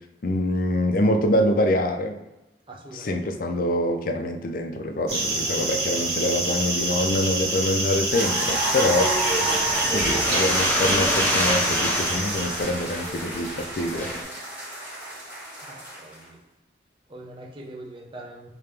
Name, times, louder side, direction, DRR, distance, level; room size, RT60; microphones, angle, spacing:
voice 1, 0.2-2.1 2.9-9.1 9.9-14.1, left 1 dB, 50° left, 5 dB, 0.4 m, -25 dB
voice 2, 2.7-3.2 9.7-10.0 15.6-16.4 17.1-18.5, right 1 dB, 30° right, -1 dB, 0.6 m, -42 dB
sound 1, 5.1-12.6, right 2 dB, 70° right, 1.5 m, -26 dB
sound 2, 8.1-16.2, right 1 dB, 10° right, 1.5 m, -31 dB
sound 3, 8.9-14.2, left 1 dB, 10° left, 0.7 m, -27 dB
3.5 x 2.8 x 3.3 m, 0.95 s
head